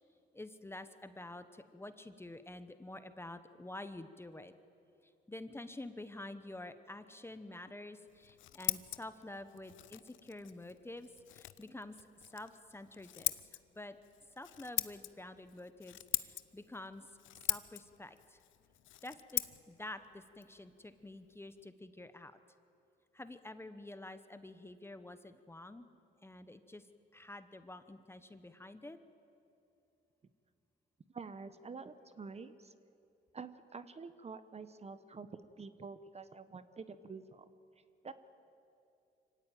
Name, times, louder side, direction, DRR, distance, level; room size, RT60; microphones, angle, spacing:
voice 1, 0.3-4.5 5.3-12.1 12.3-13.3 13.7-14.0 14.4-17.1 17.5-18.4 19.0-22.4 23.1-25.9 26.2-26.9 27.1-29.0, left 2 dB, 10° left, 11 dB, 1.0 m, -48 dB
Scissors, 8.1-21.7, left 14 dB, 75° left, 0.7 m, -42 dB
voice 2, 31.1-32.7 33.3-37.5 38.0-38.1, right 4 dB, 30° right, 12 dB, 1.0 m, -48 dB
24.5 x 16.5 x 9.2 m, 2.7 s
cardioid pair, 90°, 20 cm